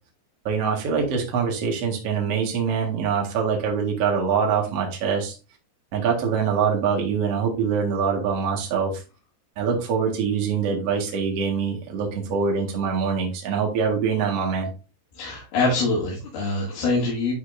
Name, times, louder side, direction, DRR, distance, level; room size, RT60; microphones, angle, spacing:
voice 1, 0.5-5.4 5.9-9.0 9.6-14.7, right 6 dB, 50° right, 0 dB, 2.4 m, -24 dB
voice 2, 15.1-17.3, left 3 dB, 80° left, -7 dB, 4.3 m, -24 dB
12.0 x 4.4 x 2.7 m, 0.31 s
omnidirectional pair, 4.3 m